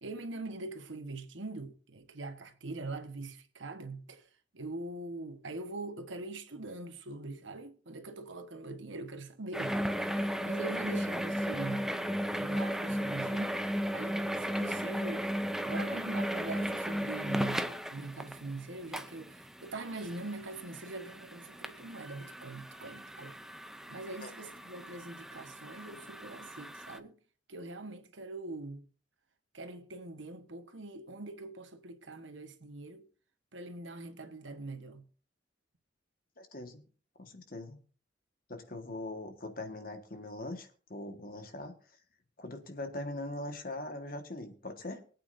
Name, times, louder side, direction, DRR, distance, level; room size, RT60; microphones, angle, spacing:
voice 1, 0.0-4.3 4.5-11.9 12.4-15.3 15.6-23.3 23.9-27.2 27.5-28.9 29.5-33.0 33.5-35.1, right 2 dB, 85° right, 1.3 m, -43 dB
sound 1, 9.5-27.0, equal, ahead, 0.5 m, -36 dB
voice 2, 36.4-36.8 37.2-37.8 38.5-41.7 42.4-45.0, left 2 dB, 50° left, 1.6 m, -41 dB
23.5 x 8.6 x 2.7 m
head